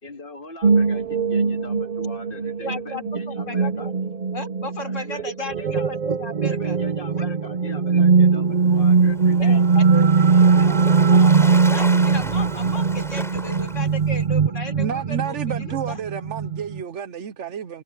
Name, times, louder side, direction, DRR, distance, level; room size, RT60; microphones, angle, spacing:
voice 1, 0.0-3.9 4.8-5.9 6.5-9.6 9.9-11.9 13.4-13.8, left 3 dB, 40° left, 2.3 m, -41 dB
sound 1, 0.6-16.8, right 5 dB, 45° right, 0.6 m, -20 dB
voice 2, 2.6-3.9 4.3-6.8 7.2-7.3 9.4-10.1 10.5-10.8 11.7-16.0, left 2 dB, 65° left, 4.3 m, -35 dB
Waves surf, 8.5-14.2, equal, ahead, 3.8 m, -35 dB
voice 3, 14.8-17.8, right 8 dB, 65° right, 1.1 m, -30 dB
omnidirectional pair, 1.4 m